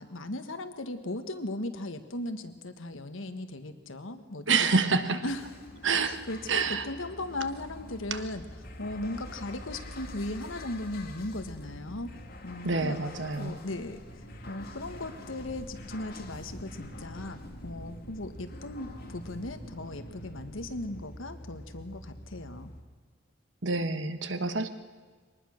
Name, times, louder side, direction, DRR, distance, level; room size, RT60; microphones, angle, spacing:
voice 1, 0.0-5.4 5.8-8.4 8.8-12.1 12.4-13.0 13.4-22.7, left 2 dB, 85° left, 8 dB, 1.5 m, -37 dB
voice 2, 4.5-5.2 5.8-6.2 6.5-6.9 8.1-8.2 12.6-13.6 23.6-24.7, right 4 dB, 70° right, 10 dB, 1.3 m, -27 dB
sound 1, 5.2-22.8, left 1 dB, 50° left, 2.0 m, -45 dB
23.5 x 19.5 x 6.5 m, 1.5 s
head